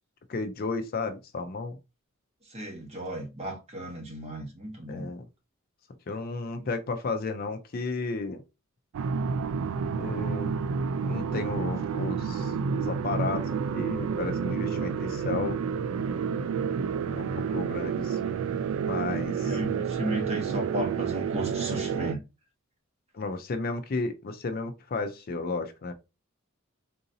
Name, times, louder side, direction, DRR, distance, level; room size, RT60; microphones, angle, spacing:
voice 1, 0.3-1.7 4.9-5.3 6.1-8.4 10.0-10.5 11.0-15.6 17.2-18.4 18.9-19.6 23.1-25.9, left 3 dB, 45° left, 0.4 m, -33 dB
voice 2, 2.5-5.1 6.6-6.7 19.4-22.2, equal, 30° right, 1.0 m, -34 dB
sound 1, 8.9-22.1, right 6 dB, 80° right, 0.3 m, -30 dB
3.8 x 2.6 x 2.6 m
head